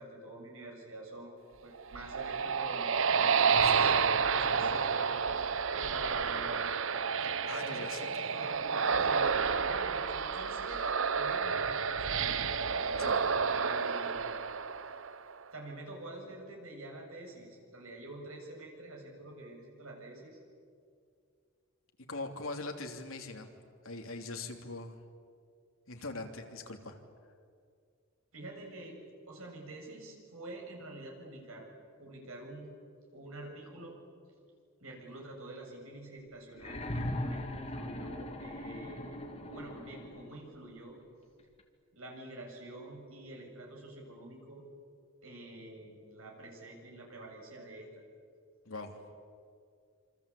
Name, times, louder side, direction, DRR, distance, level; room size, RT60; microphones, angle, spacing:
voice 1, 0.0-5.4 5.9-6.7 7.5-8.5 9.0-12.6 13.2-14.4 15.5-20.4 28.3-31.7 32.0-32.7 33.1-34.0 34.8-41.0 41.9-44.6 45.2-48.0, right 2 dB, 80° right, 1 dB, 7.2 m, -47 dB
sound 1, 1.8-15.3, right 6 dB, 65° right, 0.8 m, -30 dB
voice 2, 7.5-8.3 13.0-13.2 22.1-23.5 23.8-25.0 25.9-27.0 48.6-49.0, left 3 dB, 75° left, 4 dB, 3.0 m, -42 dB
sound 2, 36.5-40.4 41.6-41.7, left 1 dB, 30° left, 2.6 m, -39 dB
27.0 x 26.0 x 8.5 m, 2.2 s
head